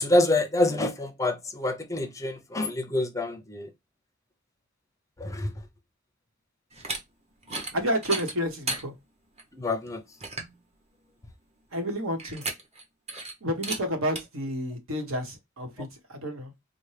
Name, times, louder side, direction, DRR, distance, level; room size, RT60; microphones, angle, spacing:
voice 1, 0.0-3.7 5.2-5.5 9.5-10.0, left 2 dB, 15° left, 0.5 m, -26 dB
sound 1, 6.7-7.0 7.4-7.7 8.0-8.8 9.4-9.5 9.9-10.0 10.2-10.5 12.2-12.8 13.1-13.3 13.6-13.8 14.2-14.3, right 2 dB, 30° right, 0.9 m, -33 dB
voice 2, 7.7-8.9 11.7-12.4 13.4-16.5, equal, 80° right, 1.1 m, -30 dB
4.3 x 2.1 x 3.2 m
head